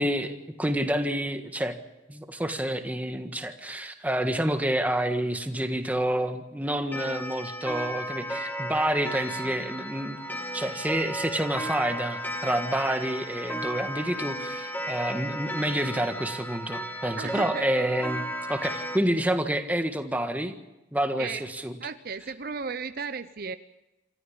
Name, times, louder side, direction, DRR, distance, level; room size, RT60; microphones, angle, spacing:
voice 1, 0.0-1.8 2.1-10.2 10.5-20.5 20.9-21.7, right 1 dB, 10° right, 6 dB, 1.6 m, -28 dB
Clock, 6.9-19.0, equal, 10° left, 2.0 m, -34 dB
voice 2, 17.1-17.8 21.2-21.4 21.8-23.6, right 5 dB, 50° right, 12 dB, 0.7 m, -35 dB
27.0 x 14.0 x 8.7 m, 1.0 s
head